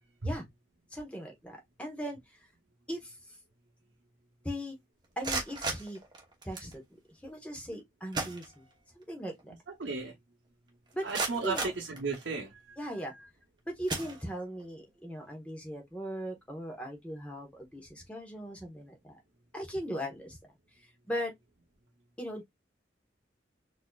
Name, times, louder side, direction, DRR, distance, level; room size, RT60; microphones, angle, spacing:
voice 1, 0.9-2.5 2.9-3.4 4.4-4.7 5.2-6.0 6.4-8.7 8.9-9.5 10.9-11.1 11.4-11.7 12.8-13.1 13.7-19.2 19.5-21.3 22.2-22.4, equal, 5° left, 1.0 m, -39 dB
sound 1, 5.0-6.8 7.7-7.8 8.1-9.0 9.4-9.5 10.0-10.1 10.7-12.5 13.2-13.4 13.8-14.7, right 3 dB, 25° right, 0.9 m, -37 dB
voice 2, 9.8-10.1 11.0-12.8, right 4 dB, 75° right, 0.8 m, -34 dB
4.2 x 2.7 x 2.3 m
head